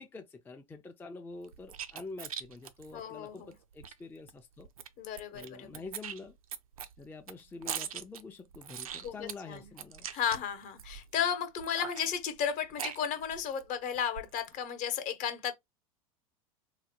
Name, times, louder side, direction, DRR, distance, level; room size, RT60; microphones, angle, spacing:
voice 1, 0.0-4.7 5.3-6.4 7.0-10.1, left 3 dB, 10° left, 0.4 m, -46 dB
sound 1, 1.4-3.9 4.3-4.4 4.6-5.5 5.7-11.1 11.6-13.6 13.9-14.5, right 8 dB, 80° right, 0.5 m, -41 dB
voice 2, 2.9-3.5 5.0-5.8 9.0-9.7 10.1-15.5, left 8 dB, 45° left, 0.9 m, -34 dB
3.7 x 2.1 x 2.8 m
hypercardioid pair, 85°, 18 cm